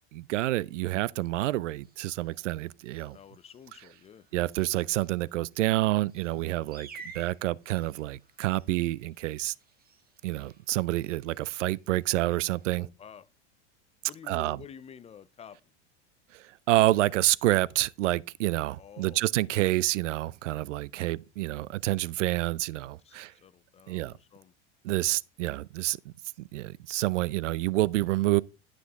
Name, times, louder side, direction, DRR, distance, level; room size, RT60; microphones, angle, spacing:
voice 1, 0.1-3.2 4.3-9.5 10.2-12.9 14.3-14.6 16.3-23.3 23.9-24.1 24.8-26.0 26.4-28.4, right 17 dB, 85° right, 0.5 m, -28 dB
sound 1, 1.8-12.7, right 4 dB, 25° right, 1.8 m, -54 dB
voice 2, 3.0-4.3 12.8-13.3 14.1-15.6 18.8-19.2 19.5-19.7 23.0-24.5, left 8 dB, 20° left, 0.4 m, -50 dB
11.5 x 6.1 x 3.6 m
hypercardioid pair, 105°, 36 cm